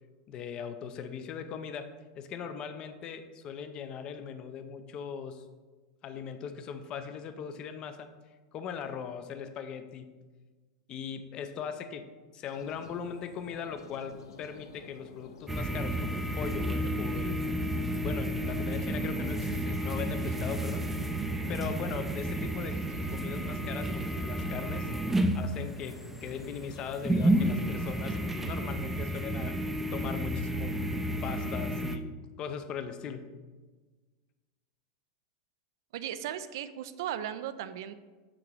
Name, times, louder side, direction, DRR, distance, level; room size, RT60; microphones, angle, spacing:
voice 1, 0.3-5.4 6.0-8.1 8.5-10.1 10.9-17.4 17.9-21.1 21.5-22.8 23.1-24.9 25.3-29.6 29.9-30.8 31.2-32.1 32.4-33.3, left 7 dB, 40° left, 9 dB, 0.6 m, -39 dB
sound 1, 12.4-28.8, left 4 dB, 85° left, 0.6 m, -51 dB
sound 2, 15.5-32.0, right 1 dB, 10° right, 0.5 m, -31 dB
voice 2, 35.9-37.9, right 10 dB, 70° right, 12 dB, 0.4 m, -36 dB
6.0 x 3.9 x 4.8 m, 1.3 s
hypercardioid pair, 105°, 2 cm